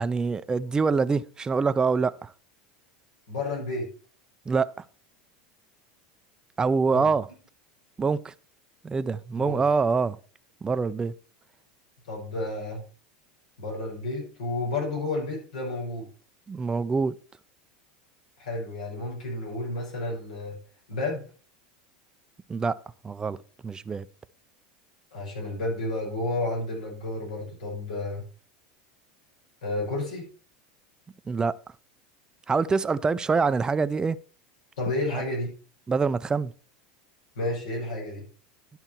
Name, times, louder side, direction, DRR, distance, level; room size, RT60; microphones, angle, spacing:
voice 1, 0.0-2.3 4.5-4.7 6.6-7.3 8.0-8.3 8.8-10.2 10.6-11.1 16.5-17.2 22.5-22.8 23.0-23.4 23.6-24.1 31.3-31.5 32.5-34.2 35.9-36.5, right 4 dB, 20° right, 0.5 m, -25 dB
voice 2, 3.3-3.9 6.9-7.1 9.4-9.6 12.1-12.8 13.6-16.1 18.4-20.6 20.9-21.2 25.1-28.2 29.6-30.3 34.8-35.5 37.4-38.3, left 2 dB, 85° left, 5.2 m, -31 dB
11.0 x 5.7 x 4.4 m
hypercardioid pair, 105°, 4 cm